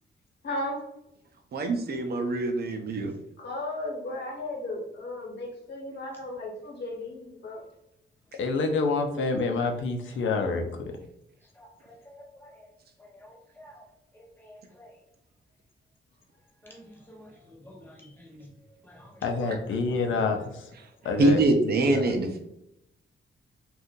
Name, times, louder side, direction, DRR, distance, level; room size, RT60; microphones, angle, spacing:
voice 1, 0.4-0.8 3.4-7.6, left 1 dB, 60° left, -1 dB, 1.1 m, -35 dB
voice 2, 1.5-3.1 21.2-22.4, right 2 dB, 55° right, 5 dB, 0.5 m, -24 dB
voice 3, 8.4-10.9 19.2-20.7 21.0-22.0, left 3 dB, 85° left, 4 dB, 0.6 m, -28 dB
voice 4, 11.6-12.7 13.1-13.8 14.1-14.9 16.6-18.5 18.9-19.1, equal, 10° left, -2 dB, 0.7 m, -51 dB
2.6 x 2.4 x 3.7 m, 0.84 s
wide cardioid pair, 170°, 19 cm